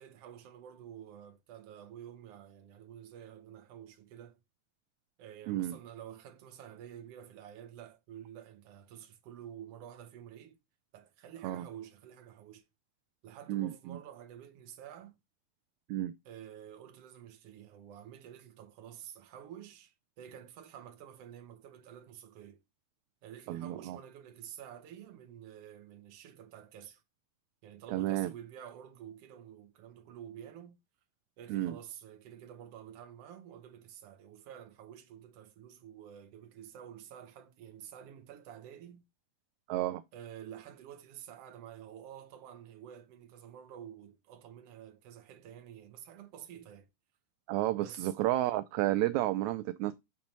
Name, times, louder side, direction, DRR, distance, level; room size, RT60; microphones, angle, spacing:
voice 1, 0.0-4.4 5.2-10.6 10.9-12.6 13.2-15.2 16.2-22.6 23.2-27.0 27.6-30.8 31.4-39.0 40.1-46.9 47.7-48.1, right 10 dB, 65° right, 1.8 m, -50 dB
voice 2, 5.5-5.8 11.4-11.6 13.5-14.0 15.9-16.1 23.5-24.0 27.9-28.3 31.5-31.8 39.7-40.0 47.5-49.9, right 15 dB, 80° right, 1.7 m, -31 dB
7.3 x 3.0 x 5.2 m
omnidirectional pair, 3.5 m